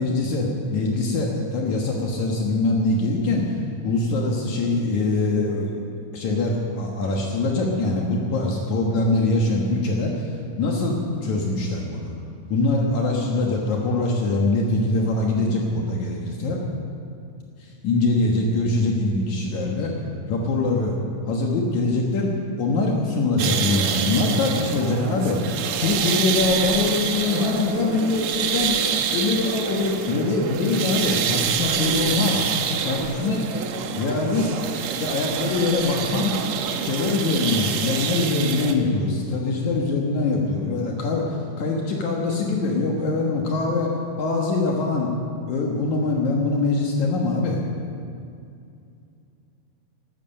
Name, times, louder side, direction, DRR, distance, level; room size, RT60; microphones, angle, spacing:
voice 1, 0.0-3.6 3.8-5.7 6.1-10.3 10.6-12.1 12.5-16.6 17.8-19.9 20.3-21.0 21.3-25.4 25.8-28.7 29.1-32.5 32.8-33.4 34.0-34.5 35.0-36.4 36.8-43.9 44.2-45.1 45.5-47.6, left 3 dB, 70° left, -1 dB, 2.7 m, -23 dB
sound 1, 23.4-38.7, right 7 dB, 75° right, 1.3 m, -26 dB
14.5 x 13.0 x 6.5 m, 2.5 s
omnidirectional pair, 3.7 m